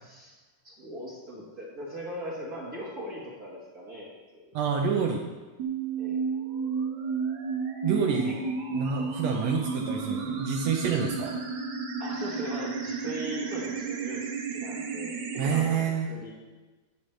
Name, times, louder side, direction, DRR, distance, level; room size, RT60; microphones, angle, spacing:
voice 1, 0.6-4.4 6.0-6.2 8.2-8.3 12.0-16.3, equal, 45° right, -5 dB, 1.3 m, -39 dB
voice 2, 4.5-5.2 7.8-8.4 8.7-11.4 15.4-16.1, right 6 dB, 85° right, 1 dB, 1.5 m, -28 dB
sound 1, 5.6-15.6, right 5 dB, 65° right, 2.1 m, -32 dB
12.5 x 8.9 x 3.2 m, 1.3 s
omnidirectional pair, 4.0 m